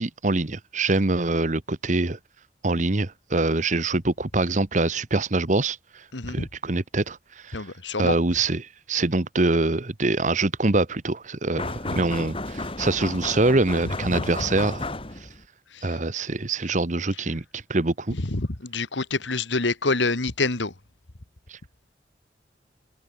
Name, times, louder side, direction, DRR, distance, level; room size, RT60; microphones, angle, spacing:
voice 1, 0.0-2.2 2.6-7.7 8.0-14.8 15.8-18.1 21.5-21.6, right 2 dB, 40° right, 1.2 m, -24 dB
voice 2, 6.1-6.5 7.5-8.2 11.9-12.0 13.8-14.2 15.7-16.0 18.1-20.7, left 3 dB, 85° left, 2.0 m, -27 dB
sound 1, 11.6-15.4, left 2 dB, 30° left, 3.1 m, -33 dB
head